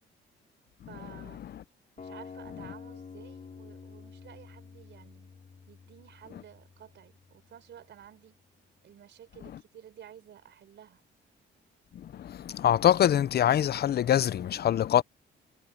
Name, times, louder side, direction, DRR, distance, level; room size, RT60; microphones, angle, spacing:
voice 1, 0.9-1.4 2.0-5.3 5.7-8.4 8.8-11.0, right 10 dB, 65° right, 4.5 m, -52 dB
sound 1, 2.0-8.0, left 5 dB, 40° left, 6.9 m, -49 dB
voice 2, 11.9-15.0, left 10 dB, 55° left, 0.7 m, -24 dB
cardioid pair, 90°, 20 cm